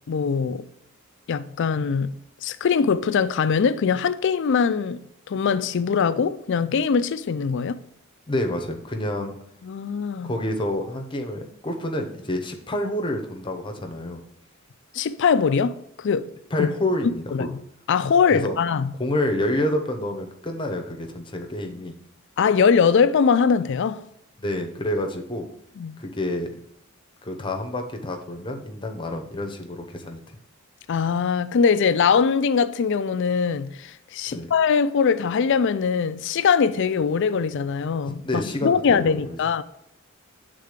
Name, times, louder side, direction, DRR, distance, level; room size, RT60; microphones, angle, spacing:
voice 1, 0.1-0.6 1.3-2.1 2.4-5.0 5.3-7.8 9.6-10.3 14.9-16.3 16.6-16.7 17.3-17.5 17.9-18.9 22.4-24.0 25.8-26.0 30.9-39.6, left 6 dB, 55° left, 0.4 m, -22 dB
voice 2, 8.3-9.4 10.2-14.2 16.5-17.5 18.3-18.6 19.0-21.9 24.4-25.5 26.0-26.5 27.2-30.2 34.3-34.5 38.0-39.4, left 1 dB, 25° left, 0.8 m, -28 dB
8.0 x 3.8 x 5.0 m
head